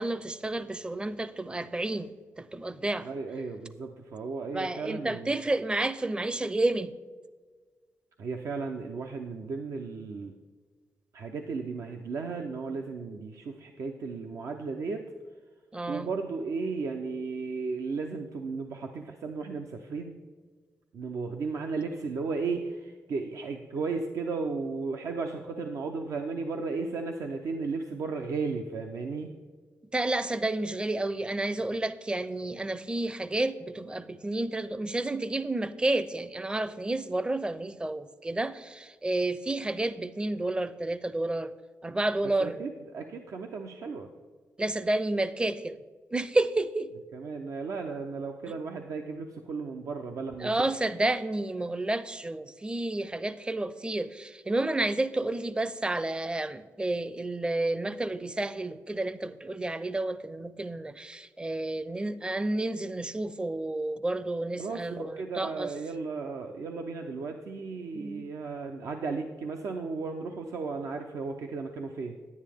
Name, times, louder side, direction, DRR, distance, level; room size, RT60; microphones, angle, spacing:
voice 1, 0.0-2.1 2.4-3.1 4.5-6.9 15.7-16.1 29.9-41.5 41.8-42.6 44.6-45.8 46.1-46.9 50.4-65.7 67.9-68.3, right 2 dB, 15° right, 0.5 m, -30 dB
voice 2, 3.0-5.4 8.2-10.3 11.1-15.0 15.9-20.1 20.9-29.3 42.4-44.1 47.1-50.5 64.6-72.2, right 4 dB, 80° right, 0.6 m, -35 dB
10.0 x 9.5 x 3.5 m
cardioid pair, 70°, 5 cm